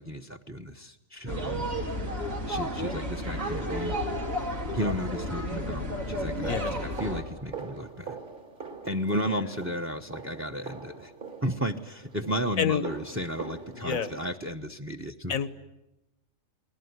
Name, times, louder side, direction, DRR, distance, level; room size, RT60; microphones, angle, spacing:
voice 1, 0.0-1.7 2.5-4.0 4.7-8.2 8.8-11.1 11.4-15.3, equal, 10° right, 9 dB, 0.9 m, -33 dB
sound 1, 1.3-7.2, equal, 85° right, 4.2 m, -32 dB
sound 2, 6.0-14.3, right 5 dB, 40° right, 2.1 m, -43 dB
voice 2, 13.8-14.1 15.3-15.5, left 8 dB, 85° left, 14 dB, 1.6 m, -27 dB
30.0 x 20.5 x 9.6 m, 0.95 s
omnidirectional pair, 1.4 m